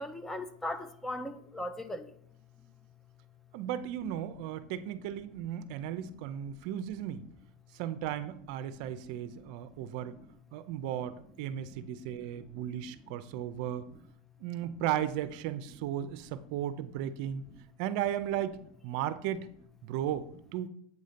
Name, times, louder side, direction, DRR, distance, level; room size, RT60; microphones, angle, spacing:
voice 1, 0.0-2.1, left 1 dB, 10° left, 0.3 m, -38 dB
voice 2, 3.5-7.3 7.7-10.2 10.5-13.9 14.4-17.4 17.8-18.6 18.8-19.5 19.8-20.7, right 11 dB, 55° right, 0.4 m, -35 dB
8.1 x 2.7 x 5.0 m
supercardioid pair, 135°, 4 cm